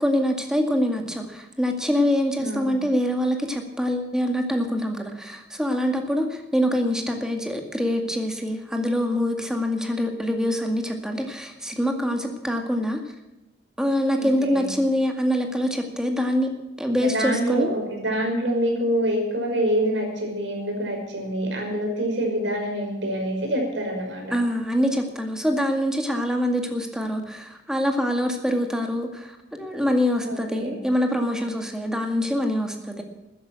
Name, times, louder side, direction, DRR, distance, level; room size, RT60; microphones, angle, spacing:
voice 1, 0.0-13.0 13.8-16.5 16.8-17.7 24.3-33.0, equal, 5° right, 4 dB, 2.1 m, -25 dB
voice 2, 2.4-2.8 14.2-14.7 17.0-24.4 30.2-30.8, right 1 dB, 90° right, 1 dB, 5.6 m, -26 dB
13.5 x 10.5 x 7.6 m, 1.0 s
head